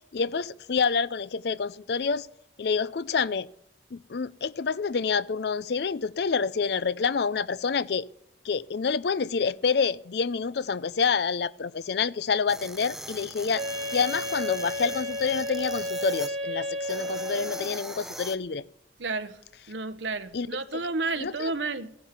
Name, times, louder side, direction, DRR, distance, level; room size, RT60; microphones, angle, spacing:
voice 1, 0.1-2.3 2.6-3.5 3.9-8.1 8.4-13.6 13.9-18.6 20.3-20.5 20.7-20.8 21.2-21.5, left 5 dB, 60° left, 0.4 m, -27 dB
sound 1, 12.5-16.3 16.8-18.4, right 1 dB, ahead, 0.6 m, -41 dB
Wind instrument woodwind instrument, 13.5-18.0, left 1 dB, 30° right, 3.0 m, -33 dB
voice 2, 19.0-19.4 19.7-22.0, right 3 dB, 75° right, 1.0 m, -31 dB
15.0 x 10.0 x 5.9 m
head